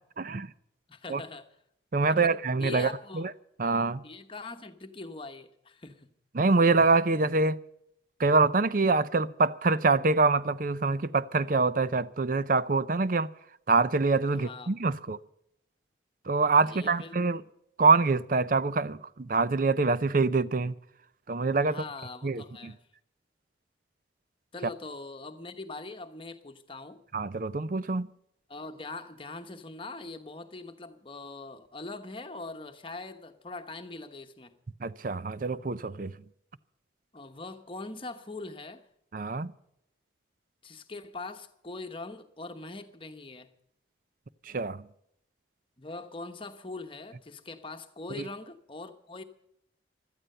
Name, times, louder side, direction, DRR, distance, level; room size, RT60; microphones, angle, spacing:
voice 1, 0.2-0.5 1.1-1.2 1.9-2.9 3.1-3.3 3.6-4.0 6.3-7.6 8.2-13.3 13.7-15.2 16.3-17.4 17.8-20.7 21.3-21.8 22.2-22.7 27.1-28.1 34.8-36.1 39.1-39.5 44.5-44.8 48.2-48.3, right 3 dB, 45° right, 0.5 m, -25 dB
voice 2, 0.9-1.5 2.1-3.3 4.0-6.1 14.3-14.7 16.6-17.1 21.7-22.8 24.5-27.0 28.5-34.5 37.1-38.8 40.6-43.5 45.8-49.2, left 3 dB, 30° left, 1.0 m, -42 dB
17.0 x 12.5 x 5.5 m
head